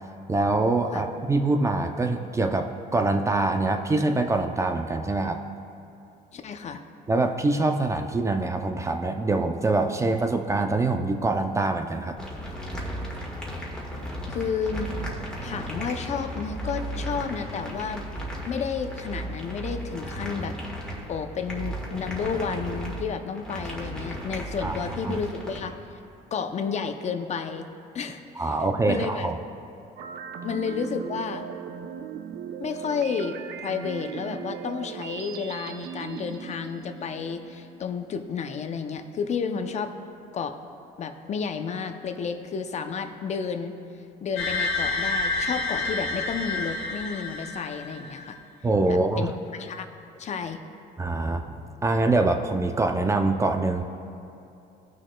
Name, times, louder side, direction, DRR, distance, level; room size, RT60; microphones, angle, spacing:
voice 1, 0.3-5.4 7.1-12.2 24.6-24.7 25.0-25.2 28.4-29.4 48.6-49.3 51.0-53.8, right 2 dB, 15° right, 5 dB, 0.5 m, -24 dB
voice 2, 6.3-6.8 14.3-14.9 15.4-18.1 18.5-20.6 21.1-25.8 26.3-27.7 27.9-28.6 28.9-29.3 30.4-31.4 32.6-39.9 40.3-40.6 41.0-43.7 44.2-48.4 48.8-49.9 50.2-50.6, left 6 dB, 40° left, 8 dB, 0.6 m, -31 dB
sound 1, 12.2-25.6, right 1 dB, 5° left, 1.6 m, -35 dB
sound 2, 30.0-37.8, right 8 dB, 75° right, 0.6 m, -38 dB
sound 3, 44.4-48.2, left 3 dB, 75° left, 1.4 m, -29 dB
18.5 x 6.2 x 2.2 m, 2.7 s
cardioid pair, 110°, 17 cm